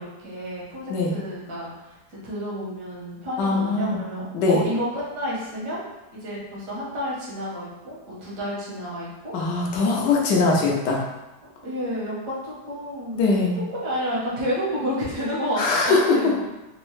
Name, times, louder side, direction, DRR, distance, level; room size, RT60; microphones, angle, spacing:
voice 1, 0.0-2.0 2.2-5.8 6.1-9.3 10.0-10.1 11.4-13.2 13.6-16.5, equal, 75° right, -6 dB, 1.7 m, -30 dB
voice 2, 3.4-4.0 4.3-4.6 9.3-11.0 13.2-13.6 15.6-16.0, left 3 dB, 90° left, -2 dB, 1.4 m, -21 dB
4.4 x 2.0 x 3.1 m, 1.1 s
omnidirectional pair, 1.8 m